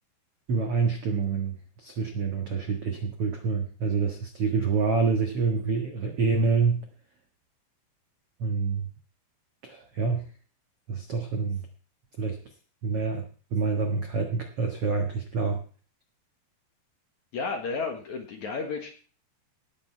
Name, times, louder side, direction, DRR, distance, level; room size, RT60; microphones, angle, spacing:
voice 1, 0.5-6.8 8.4-8.9 9.6-10.2 10.9-11.6 12.2-12.4 12.8-13.2 13.5-15.6, right 4 dB, 80° right, 3 dB, 1.3 m, -27 dB
voice 2, 17.3-18.9, left 4 dB, 60° left, 4 dB, 2.2 m, -32 dB
18.5 x 8.2 x 4.5 m, 0.40 s
omnidirectional pair, 5.1 m